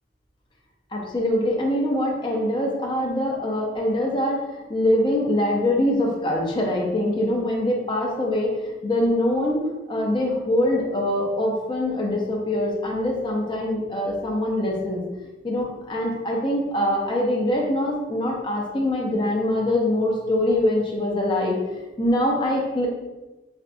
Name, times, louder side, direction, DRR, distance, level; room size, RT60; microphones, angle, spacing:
voice 1, 0.9-8.5 8.8-15.0 15.4-21.6 22.0-22.9, left 1 dB, 25° left, -2 dB, 0.6 m, -23 dB
4.3 x 2.4 x 2.5 m, 1.1 s
head